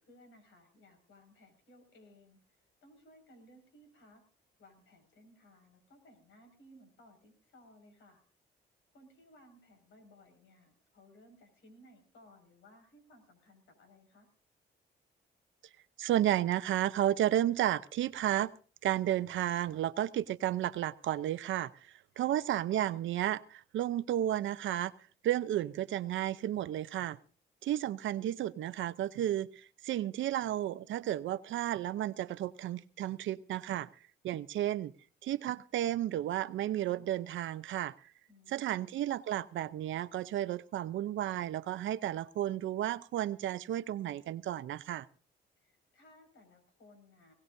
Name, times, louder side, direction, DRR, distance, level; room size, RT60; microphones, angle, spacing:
voice 1, 0.0-4.2 4.6-8.2 8.9-14.3 22.1-22.4 38.3-38.9 45.6-47.3, left 1 dB, 75° left, 6 dB, 5.7 m, -60 dB
voice 2, 16.0-18.5 18.8-21.7 22.2-24.9 25.2-27.2 27.6-29.5 29.8-33.9 34.2-34.9 35.2-37.9 38.5-45.1, right 12 dB, 75° right, 15 dB, 0.7 m, -32 dB
21.0 x 17.5 x 2.7 m, 0.40 s
cardioid pair, 90°, 20 cm